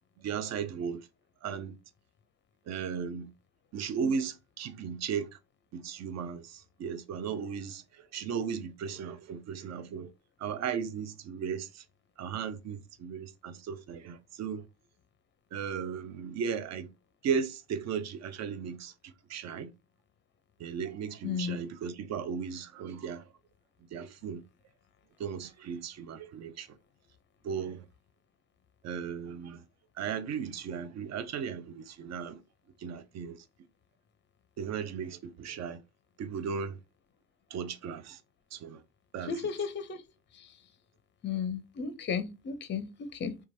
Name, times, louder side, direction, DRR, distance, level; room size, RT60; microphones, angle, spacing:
voice 1, 0.2-1.1 1.4-1.8 2.7-3.3 3.7-5.3 5.7-10.1 10.4-11.8 12.2-14.6 15.5-16.9 17.2-18.9 19.3-19.7 20.6-23.2 23.9-24.4 25.2-26.7 27.4-27.8 28.8-29.6 30.0-32.4 32.8-33.4 34.6-35.8 36.2-36.8 37.5-38.2 38.5-38.8 39.1-39.5, right 6 dB, 40° right, 0.6 m, -36 dB
voice 2, 21.2-21.6 39.3-40.0 40.4-40.5 41.2-43.4, left 6 dB, 25° left, 0.6 m, -34 dB
3.0 x 2.3 x 2.6 m
hypercardioid pair, 70°, 42 cm